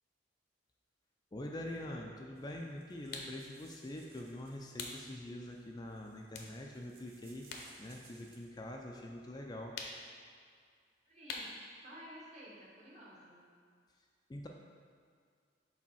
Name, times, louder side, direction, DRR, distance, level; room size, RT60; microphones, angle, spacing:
voice 1, 1.3-7.5 7.8-9.7 14.3-14.5, left 1 dB, 25° left, 0 dB, 0.4 m, -44 dB
sound 1, 2.3-8.6, right 4 dB, 60° right, 0.8 m, -64 dB
sound 2, 3.1-3.4 4.8-5.0 5.5-5.7 6.3-7.7 8.0-9.1 9.7-10.2 11.3-11.6, left 4 dB, 65° left, 0.7 m, -44 dB
voice 2, 11.0-11.5 11.8-13.5, equal, 40° right, -6 dB, 1.6 m, -53 dB
5.0 x 4.1 x 5.5 m, 2.1 s
head